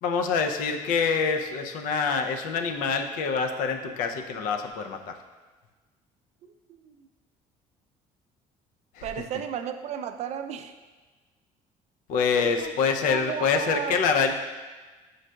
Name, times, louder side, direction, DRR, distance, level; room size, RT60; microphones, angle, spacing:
voice 1, 0.0-5.2 8.9-9.1 12.1-14.3, left 5 dB, 70° left, 6 dB, 0.5 m, -26 dB
voice 2, 6.4-7.1 9.0-10.7 12.4-12.7 13.0-14.0 14.2-14.3, right 9 dB, 50° right, 8 dB, 0.4 m, -34 dB
6.2 x 3.8 x 2.2 m, 1.3 s
cardioid pair, 110°, 14 cm